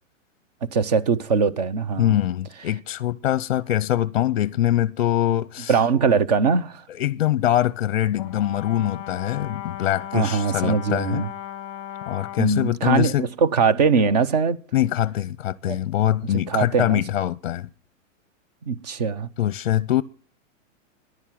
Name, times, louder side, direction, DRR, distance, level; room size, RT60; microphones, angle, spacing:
voice 1, 0.7-2.1 5.7-6.8 10.1-11.3 12.4-14.6 15.7-15.8 16.5-17.0 18.7-19.3, right 5 dB, 30° right, 0.7 m, -21 dB
voice 2, 2.0-5.8 6.9-11.3 12.1-13.3 14.7-17.7 19.4-20.0, left 12 dB, 55° left, 0.6 m, -23 dB
Brass instrument, 8.2-12.5, left 11 dB, 25° left, 1.2 m, -36 dB
14.5 x 11.0 x 7.5 m
supercardioid pair, 180°, 39 cm